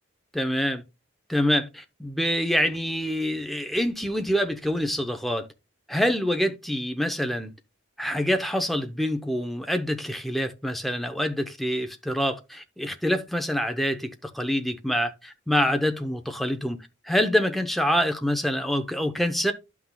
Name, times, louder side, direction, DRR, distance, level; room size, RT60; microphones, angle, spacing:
voice 1, 0.3-0.8 1.3-5.5 5.9-7.5 8.0-19.5, equal, ahead, 0.6 m, -26 dB
11.0 x 5.9 x 2.2 m
head